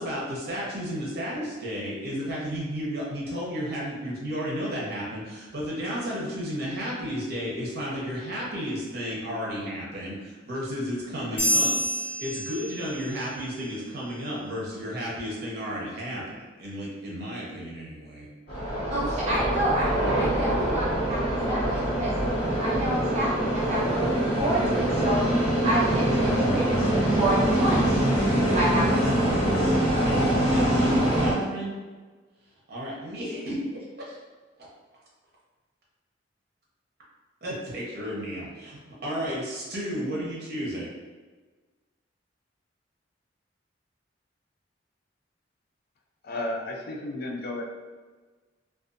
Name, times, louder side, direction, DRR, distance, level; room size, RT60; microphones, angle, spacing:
voice 1, 0.0-18.3 30.1-31.8 32.7-33.6 34.1-34.2 37.4-40.9, equal, 55° right, -5 dB, 0.8 m, -33 dB
sound 1, 11.4-13.2, equal, 85° left, 1.2 m, -27 dB
sound 2, 18.5-31.3, right 1 dB, 35° left, 1.2 m, -24 dB
voice 2, 18.9-22.1 22.6-25.2 25.6-28.0 28.5-29.3, right 1 dB, 35° right, -6 dB, 0.3 m, -29 dB
voice 3, 46.2-47.6, left 1 dB, 55° left, 0 dB, 0.4 m, -33 dB
2.5 x 2.3 x 2.5 m, 1.3 s
head